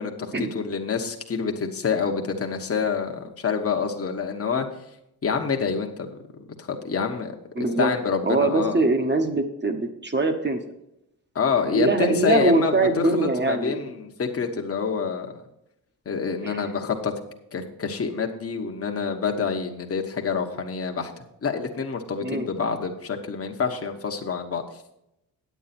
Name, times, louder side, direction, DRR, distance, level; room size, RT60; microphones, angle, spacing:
voice 1, 0.0-4.7 5.2-8.8 11.3-15.4 16.0-17.1 17.5-24.6, left 5 dB, 35° left, 3 dB, 1.1 m, -27 dB
voice 2, 7.6-7.9 8.2-10.6 11.7-13.8 16.4-16.6 22.2-22.5, right 2 dB, 25° right, 6 dB, 1.1 m, -22 dB
9.3 x 8.6 x 4.2 m, 0.82 s
wide cardioid pair, 110°, 39 cm